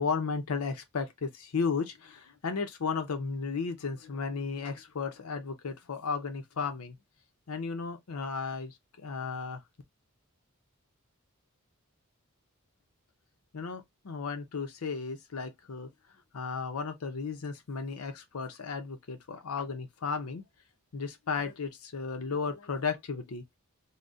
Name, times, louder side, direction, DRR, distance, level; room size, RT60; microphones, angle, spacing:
voice 1, 0.0-7.0 7.5-9.6 13.5-15.9 16.3-20.4 20.9-23.4, left 5 dB, 85° left, 0.6 m, -34 dB
3.8 x 2.1 x 2.4 m
head